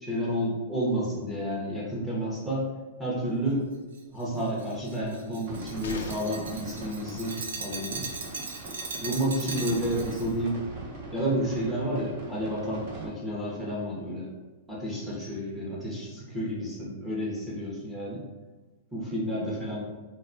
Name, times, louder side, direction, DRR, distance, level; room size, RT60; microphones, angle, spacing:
voice 1, 0.0-2.7 3.0-3.7 4.1-8.1 9.0-10.6 11.1-14.3 14.7-18.2 18.9-19.8, equal, 5° right, -6 dB, 0.6 m, -30 dB
Glass, 3.9-10.3, right 4 dB, 90° right, 0.5 m, -39 dB
sound 1, 5.4-13.1, right 2 dB, 45° right, 0.7 m, -42 dB
sound 2, 5.8-6.6 8.5-8.6 8.9-9.0, left 4 dB, 80° left, 0.3 m, -40 dB
2.7 x 2.2 x 2.5 m, 1.2 s
supercardioid pair, 155°, 0 cm